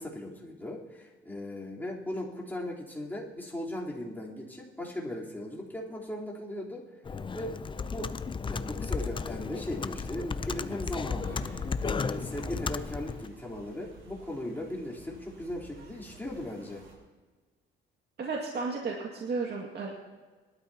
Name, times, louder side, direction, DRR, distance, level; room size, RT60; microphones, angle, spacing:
voice 1, 0.0-6.8 7.3-8.1 8.5-16.8, left 1 dB, 10° left, -5 dB, 3.7 m, -38 dB
Computer keyboard, 7.1-13.3, left 5 dB, 25° left, 0.5 m, -34 dB
sound 1, 10.8-16.9, right 4 dB, 75° right, 3.7 m, -51 dB
voice 2, 18.2-20.0, right 4 dB, 55° right, -1 dB, 2.2 m, -33 dB
22.5 x 12.5 x 2.9 m, 1.3 s
cardioid pair, 90°, 20 cm